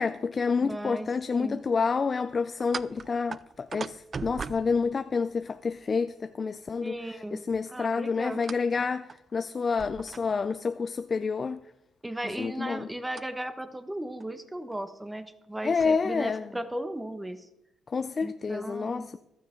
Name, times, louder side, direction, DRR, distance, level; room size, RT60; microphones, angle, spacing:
voice 1, 0.0-7.0 7.3-11.6 12.4-12.9 15.6-16.4 17.9-19.2, left 5 dB, 35° left, 0.5 m, -29 dB
voice 2, 0.6-1.6 6.8-8.4 12.0-17.5 18.2-19.1, right 1 dB, 10° right, 1.2 m, -36 dB
sound 1, 2.6-5.6 8.4-8.7 9.1-9.2 9.8-10.6 13.1-13.2 14.2-14.3 14.6-14.8 15.4-16.0, right 5 dB, 40° right, 0.3 m, -40 dB
14.5 x 12.0 x 3.8 m
cardioid pair, 90°, 0 cm